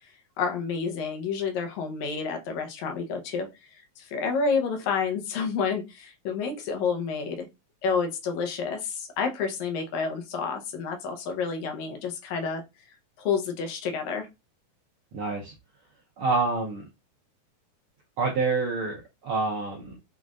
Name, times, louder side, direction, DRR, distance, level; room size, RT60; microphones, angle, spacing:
voice 1, 0.4-3.5 4.0-7.5 7.8-12.6 13.2-14.3, left 5 dB, 75° left, 2.1 m, -29 dB
voice 2, 15.1-15.5 16.2-16.8 18.2-20.0, right 3 dB, 85° right, 1.2 m, -27 dB
6.2 x 2.3 x 2.4 m
omnidirectional pair, 3.5 m